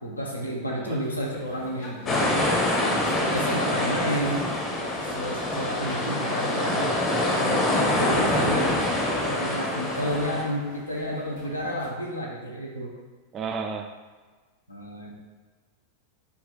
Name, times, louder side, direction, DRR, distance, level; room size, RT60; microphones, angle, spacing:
voice 1, 0.0-2.7 3.2-4.5 5.0-8.8 9.2-12.9 14.7-15.1, equal, 80° left, -2 dB, 0.6 m, -31 dB
sound 1, 1.0-11.9, left 1 dB, 60° left, 1.0 m, -42 dB
sound 2, 2.1-10.4, left 1 dB, 25° left, 0.7 m, -25 dB
voice 2, 3.6-4.1 13.3-13.9, right 5 dB, 30° right, 5 dB, 0.3 m, -34 dB
3.4 x 2.4 x 3.9 m, 1.4 s
figure-of-eight pair, 90°, 0 cm